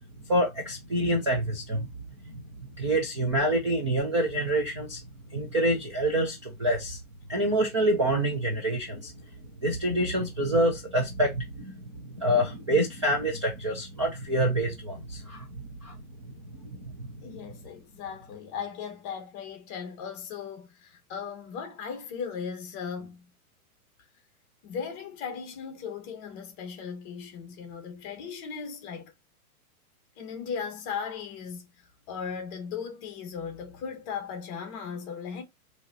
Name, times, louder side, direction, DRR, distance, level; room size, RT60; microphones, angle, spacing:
voice 1, 0.3-1.9 2.8-5.0 5.3-7.0 7.3-9.1 9.6-11.8 12.1-15.5 15.8-16.0 16.8-17.1, right 1 dB, 20° right, 0.4 m, -26 dB
voice 2, 17.2-23.3 24.6-29.1 30.2-35.4, left 6 dB, 25° left, 0.9 m, -37 dB
4.8 x 2.8 x 2.7 m
hypercardioid pair, 160°, 44 cm